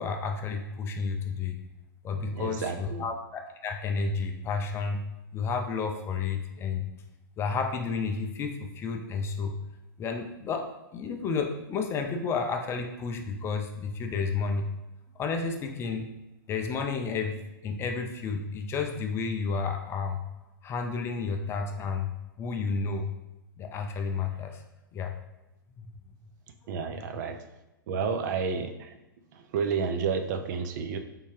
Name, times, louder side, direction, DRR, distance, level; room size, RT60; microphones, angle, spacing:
voice 1, 0.0-1.6 2.0-5.0 5.3-6.9 7.4-9.6 10.0-10.7 10.9-14.7 15.2-16.1 16.5-17.4 17.6-20.3 20.6-23.1 23.6-24.6 24.9-25.2 25.8-25.9, left 5 dB, 20° left, 4 dB, 0.3 m, -31 dB
voice 2, 2.3-3.1 26.7-27.4 27.9-28.9 29.3-31.0, right 6 dB, 55° right, 6 dB, 0.4 m, -31 dB
3.6 x 2.7 x 3.0 m, 0.96 s
hypercardioid pair, 120°, 12 cm